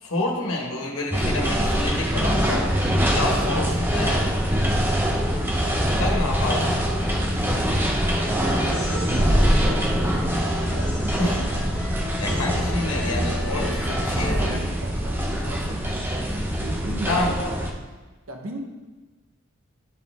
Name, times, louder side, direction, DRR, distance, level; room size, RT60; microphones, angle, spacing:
voice 1, 0.0-2.7 3.1-4.3 6.0-6.7 11.2-11.4 12.2-14.6 17.1-17.3, left 2 dB, 75° left, 0 dB, 1.2 m, -28 dB
sound 1, 1.1-17.7, equal, 10° right, 0.7 m, -23 dB
voice 2, 8.2-11.6 12.3-12.8 14.2-17.6 18.3-18.6, right 1 dB, 85° right, 1 dB, 1.1 m, -37 dB
sound 2, 8.5-14.4, equal, 5° left, 1.1 m, -38 dB
11.0 x 4.1 x 3.6 m, 1.3 s
head